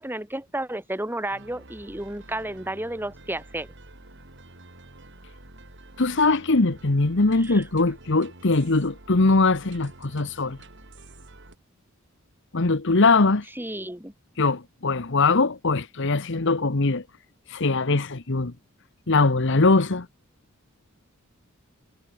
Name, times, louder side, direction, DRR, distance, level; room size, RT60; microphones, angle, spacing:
voice 1, 0.0-3.7 7.4-7.6 13.6-14.1, right 1 dB, 10° right, 5.9 m, -32 dB
sound 1, 1.3-11.5, right 2 dB, 60° right, 4.9 m, -48 dB
voice 2, 6.0-10.6 12.5-13.4 14.4-17.0 17.5-18.5 19.1-20.1, left 3 dB, 60° left, 1.2 m, -21 dB
head